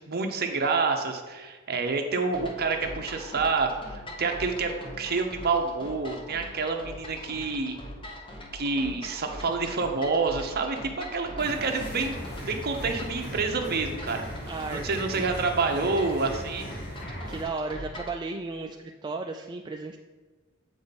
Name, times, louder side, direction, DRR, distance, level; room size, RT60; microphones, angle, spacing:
voice 1, 0.0-7.8 8.5-14.3 14.7-16.7, right 4 dB, 50° right, 4 dB, 0.9 m, -28 dB
sound 1, 2.3-18.2, equal, 25° left, 1.0 m, -42 dB
sound 2, 11.4-17.4, equal, 50° left, 2.1 m, -38 dB
voice 2, 14.5-14.8 15.1-15.2 17.3-18.8 19.0-20.0, right 3 dB, 20° right, 2 dB, 0.3 m, -34 dB
7.9 x 5.1 x 4.1 m, 1.3 s
head